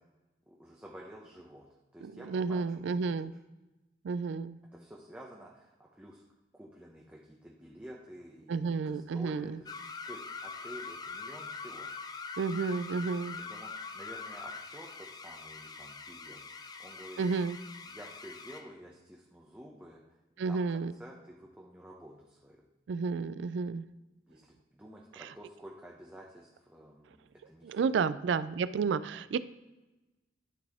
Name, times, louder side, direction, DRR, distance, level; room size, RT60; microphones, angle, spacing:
voice 1, 0.5-1.7 1.9-3.2 4.7-6.2 6.5-11.9 13.4-17.3 17.8-20.1 20.5-22.6 24.3-27.9, equal, 10° right, -3 dB, 0.7 m, -51 dB
voice 2, 2.0-3.3 4.0-4.6 8.5-9.6 12.4-13.4 17.2-17.6 20.4-20.9 22.9-23.9 27.6-29.4, right 5 dB, 80° right, 15 dB, 0.3 m, -31 dB
sound 1, 9.7-18.7, left 4 dB, 20° left, 0.3 m, -43 dB
11.5 x 4.1 x 3.5 m, 1.1 s
head